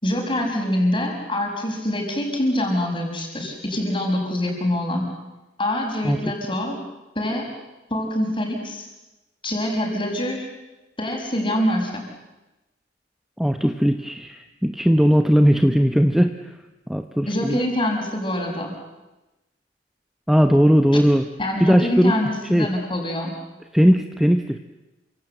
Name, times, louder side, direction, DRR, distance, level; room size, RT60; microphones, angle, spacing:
voice 1, 0.0-5.1 5.6-6.8 7.2-7.5 7.9-8.9 9.4-10.5 11.0-12.0 17.3-18.8 21.4-23.3, left 1 dB, 30° left, 1 dB, 5.9 m, -25 dB
voice 2, 13.4-16.3 16.9-17.6 20.3-21.2 21.6-22.1 22.5-22.7 23.7-24.6, equal, ahead, 6 dB, 0.9 m, -18 dB
28.0 x 26.0 x 7.9 m, 1.1 s
head